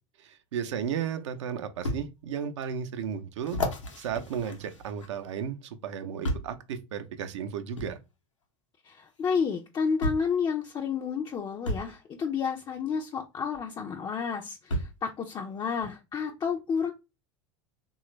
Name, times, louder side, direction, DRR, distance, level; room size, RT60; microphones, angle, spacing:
voice 1, 0.2-3.6 4.0-8.0, right 8 dB, 75° right, 0.5 m, -34 dB
sound 1, 1.8-2.0 2.6-2.7 3.4-5.3 6.2-6.6 7.8-7.9 9.2-9.3 10.0-10.3 11.6-11.9 13.5-13.6 14.7-15.0 15.8-15.9, left 1 dB, 90° left, 0.7 m, -32 dB
voice 2, 8.9-16.9, left 6 dB, 25° left, 0.4 m, -30 dB
3.1 x 2.3 x 3.0 m
hypercardioid pair, 85°, 15 cm